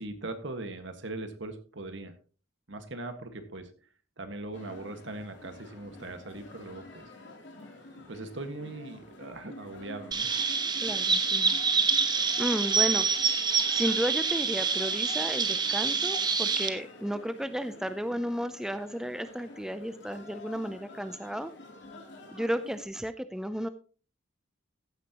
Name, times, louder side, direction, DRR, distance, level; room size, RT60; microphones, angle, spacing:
voice 1, 0.0-2.1 2.7-3.7 4.2-7.1 7.9-10.3, right 2 dB, 60° right, 8 dB, 1.7 m, -40 dB
sound 1, 4.5-22.8, left 2 dB, 60° left, 3.1 m, -48 dB
Chirp tweet, 10.1-16.7, right 5 dB, 20° right, 1.0 m, -27 dB
voice 2, 10.8-11.6 12.4-13.1 13.7-21.5 22.3-23.7, equal, 5° right, 11 dB, 0.4 m, -33 dB
14.5 x 9.8 x 2.9 m, 0.38 s
head